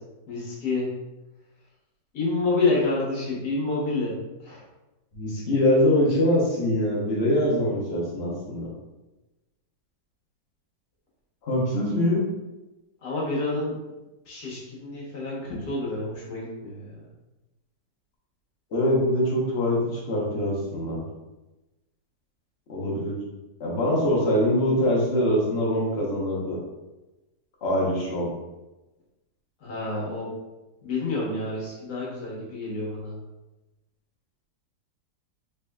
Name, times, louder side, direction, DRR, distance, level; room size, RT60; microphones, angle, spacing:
voice 1, 0.3-0.9 2.1-4.2 4.4-4.6 13.0-13.8 14.3-17.0 29.6-30.3 30.8-33.1, left 3 dB, 65° left, -4 dB, 1.5 m, -28 dB
voice 2, 5.1-8.7 11.4-12.2 18.7-21.0 22.7-23.2 23.6-26.6 27.6-28.3, left 1 dB, 45° left, -4 dB, 0.9 m, -23 dB
3.5 x 3.3 x 2.2 m, 1.0 s
omnidirectional pair, 1.9 m